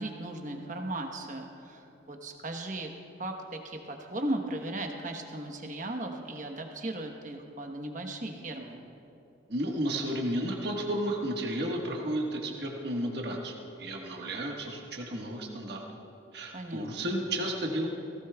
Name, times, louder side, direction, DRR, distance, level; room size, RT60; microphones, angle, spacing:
voice 1, 0.0-2.9 3.2-8.8 16.5-17.2, right 1 dB, 40° right, 3 dB, 1.1 m, -37 dB
voice 2, 9.5-15.8 16.3-17.9, right 1 dB, 60° right, 0 dB, 1.4 m, -32 dB
18.5 x 16.5 x 2.3 m, 2.8 s
head